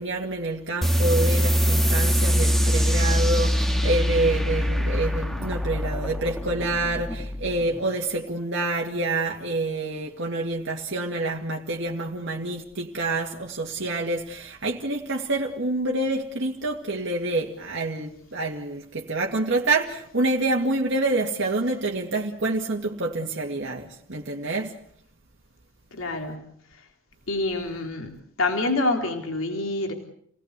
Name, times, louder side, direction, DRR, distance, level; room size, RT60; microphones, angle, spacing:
voice 1, 0.0-24.7, right 2 dB, 60° right, 2.3 m, -27 dB
sound 1, 0.8-7.9, equal, ahead, 2.0 m, -23 dB
voice 2, 25.9-26.5 27.3-29.9, left 2 dB, 70° left, 3.6 m, -27 dB
30.0 x 18.5 x 8.2 m
head